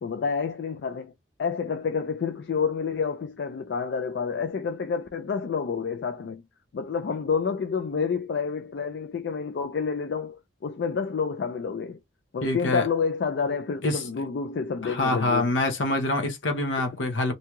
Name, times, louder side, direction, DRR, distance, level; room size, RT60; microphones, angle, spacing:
voice 1, 0.0-1.1 1.4-6.4 6.7-12.0 12.3-15.5, left 5 dB, 60° left, 0.3 m, -29 dB
voice 2, 12.4-12.9 13.8-14.0 14.8-17.3, left 2 dB, 80° left, 0.8 m, -25 dB
2.7 x 2.3 x 2.9 m
head